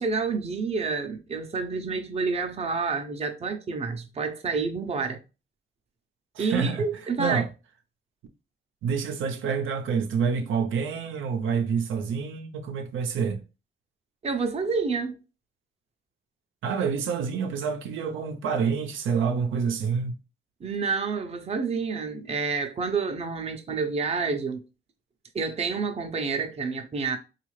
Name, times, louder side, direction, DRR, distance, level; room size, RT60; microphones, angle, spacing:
voice 1, 0.0-5.2 6.4-7.4 14.2-15.1 20.6-24.6 25.3-27.2, right 4 dB, 30° right, 0.6 m, -28 dB
voice 2, 6.3-6.8 7.2-7.5 8.8-13.4 16.6-20.1, right 6 dB, 90° right, 0.6 m, -27 dB
3.6 x 2.4 x 3.1 m
cardioid pair, 115°, 20 cm